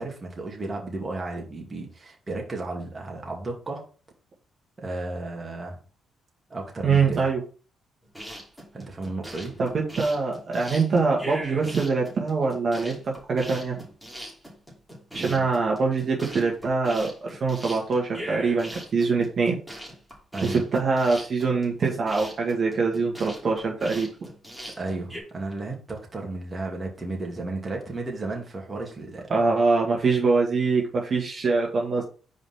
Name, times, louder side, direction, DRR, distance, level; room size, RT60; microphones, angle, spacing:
voice 1, 0.0-3.9 4.8-5.8 6.5-7.2 8.2-8.4 8.7-9.6 15.1-15.5 20.3-20.6 24.8-29.5, right 2 dB, 25° right, 0 dB, 2.2 m, -34 dB
voice 2, 6.8-7.4 9.6-13.8 15.1-19.6 20.4-24.1 29.3-32.0, right 4 dB, 45° right, -2 dB, 1.8 m, -24 dB
sound 1, 8.0-25.2, equal, ahead, 2.8 m, -40 dB
5.0 x 4.1 x 5.7 m, 0.38 s
cardioid pair, 90°, 0 cm